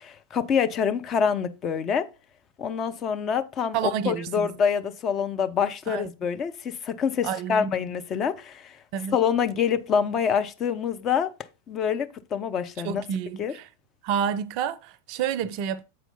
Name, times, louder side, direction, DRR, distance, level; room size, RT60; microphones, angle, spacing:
voice 1, 0.0-2.1 2.6-8.8 9.1-11.3 11.7-13.0 13.4-13.5, left 7 dB, 30° left, 0.6 m, -26 dB
voice 2, 3.7-4.5 5.9-6.1 7.2-7.8 8.9-9.2 12.8-13.7 14.0-15.8, right 8 dB, 45° right, 0.5 m, -29 dB
7.6 x 4.5 x 4.0 m
figure-of-eight pair, 90°, 0 cm